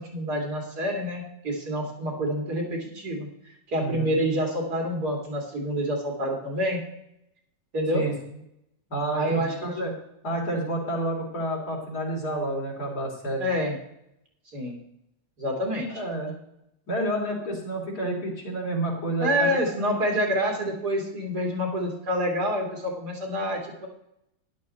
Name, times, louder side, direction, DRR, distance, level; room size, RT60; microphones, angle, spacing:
voice 1, 0.0-3.3 3.7-6.8 7.7-8.0 9.1-9.7 13.4-13.7 14.5-14.8 15.4-16.0 19.2-23.9, equal, 65° right, 1 dB, 3.0 m, -27 dB
voice 2, 3.8-4.1 7.9-8.1 8.9-9.9 10.2-13.5 15.9-16.3 16.9-19.5, right 1 dB, 60° left, -1 dB, 3.8 m, -29 dB
12.0 x 11.0 x 4.2 m, 0.81 s
omnidirectional pair, 1.8 m